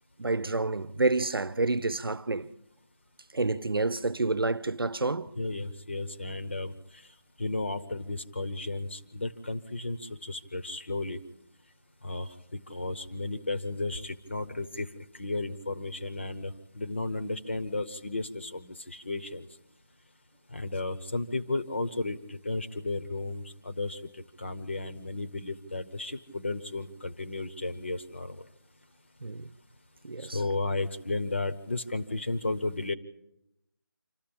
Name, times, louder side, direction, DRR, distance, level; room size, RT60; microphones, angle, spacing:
voice 1, 0.2-2.5 3.3-5.3 29.2-29.5 30.0-30.4, right 3 dB, 90° right, 0.9 m, -28 dB
voice 2, 5.4-7.0 7.4-11.2 12.0-14.9 15.1-19.5 20.5-28.4 30.2-32.9, left 2 dB, 30° left, 0.8 m, -34 dB
26.5 x 14.0 x 8.7 m
figure-of-eight pair, 175°, 12 cm